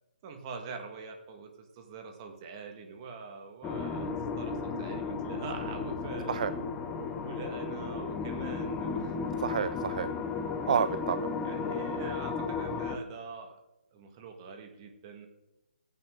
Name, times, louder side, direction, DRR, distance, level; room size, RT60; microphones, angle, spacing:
voice 1, 0.2-6.6 7.2-9.3 11.4-13.6 13.9-15.3, right 5 dB, 25° right, 4 dB, 1.7 m, -44 dB
sound 1, 3.6-13.0, left 4 dB, 10° left, 0.7 m, -34 dB
voice 2, 9.4-10.1 10.7-11.3, right 7 dB, 45° right, 14 dB, 0.4 m, -29 dB
16.0 x 9.5 x 3.8 m, 1.0 s
hypercardioid pair, 155°, 5 cm